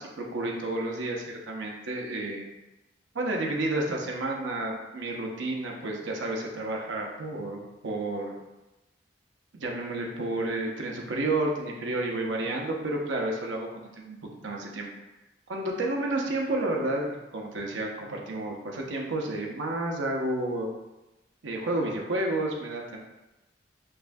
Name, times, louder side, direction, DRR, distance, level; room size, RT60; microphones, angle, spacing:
voice 1, 0.0-2.4 3.1-8.4 9.5-14.2 14.4-14.9 15.5-20.7 21.4-23.0, right 2 dB, 80° right, 0 dB, 0.7 m, -31 dB
5.5 x 2.2 x 2.6 m, 1.0 s
head